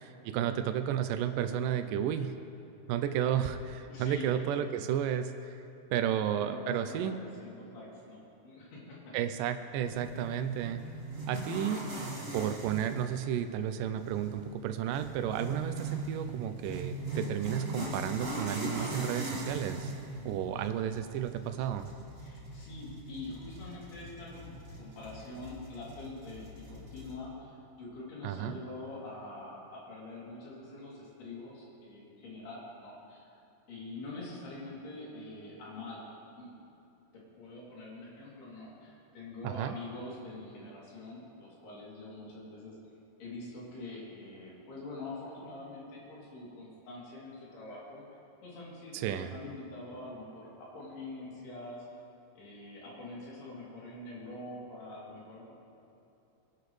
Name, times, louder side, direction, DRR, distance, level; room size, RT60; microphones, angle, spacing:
voice 1, 0.2-2.4 2.9-5.6 5.9-7.2 9.1-10.8 11.3-11.9 12.3-19.9 20.3-21.9 28.2-28.6 39.4-39.7 48.9-49.3, right 10 dB, 90° right, 8 dB, 1.9 m, -32 dB
voice 2, 3.9-4.7 6.0-9.1 10.8-11.0 16.1-16.4 22.2-33.3 33.7-36.5 37.1-42.8 43.2-51.8 52.3-55.5, left 2 dB, 85° left, -6 dB, 5.1 m, -45 dB
sound 1, 9.8-27.1, right 2 dB, 30° right, 1.7 m, -41 dB
24.0 x 11.5 x 3.2 m, 2.8 s
omnidirectional pair, 4.4 m